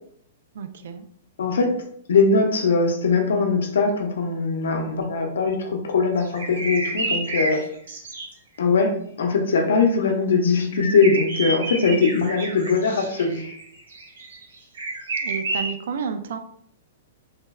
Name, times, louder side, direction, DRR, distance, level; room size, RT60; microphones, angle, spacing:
voice 1, 0.5-1.1 15.2-16.4, right 6 dB, 70° right, 9 dB, 0.3 m, -31 dB
voice 2, 1.4-1.8 2.1-7.6 8.6-13.5, left 4 dB, 85° left, 3 dB, 0.5 m, -21 dB
sound 1, 6.2-8.3 10.8-15.7, right 2 dB, 90° right, 0.7 m, -29 dB
3.2 x 2.0 x 2.2 m, 0.65 s
hypercardioid pair, 160°, 0 cm